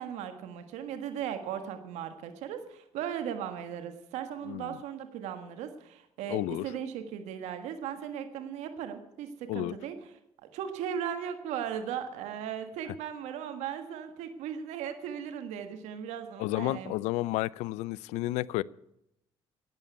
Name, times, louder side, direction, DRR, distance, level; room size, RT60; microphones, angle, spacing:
voice 1, 0.0-10.0 10.5-16.9, right 8 dB, 80° right, 8 dB, 1.5 m, -37 dB
voice 2, 4.5-4.8 6.3-6.7 9.5-9.8 16.4-18.6, left 17 dB, 85° left, 22 dB, 0.4 m, -31 dB
12.0 x 8.9 x 9.4 m, 0.82 s
supercardioid pair, 70°, 12 cm